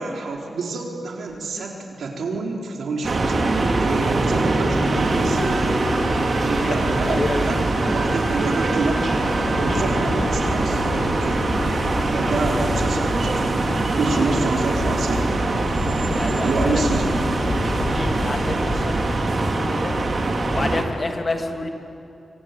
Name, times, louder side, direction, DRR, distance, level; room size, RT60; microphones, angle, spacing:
voice 1, 0.0-5.6 6.4-7.6 7.9-11.8 12.1-13.7 14.0-15.3 16.4-17.2, right 3 dB, 85° right, 0 dB, 4.2 m, -28 dB
sound 1, 3.0-20.8, right 2 dB, 45° right, 2.8 m, -22 dB
sound 2, 4.8-19.2, left 2 dB, 80° left, 5.0 m, -31 dB
voice 2, 6.6-7.7 14.0-14.5 16.1-16.8 17.5-19.9 20.5-21.7, left 2 dB, 35° left, 4 dB, 2.6 m, -29 dB
25.5 x 24.5 x 9.2 m, 2.7 s
wide cardioid pair, 120°, 0 cm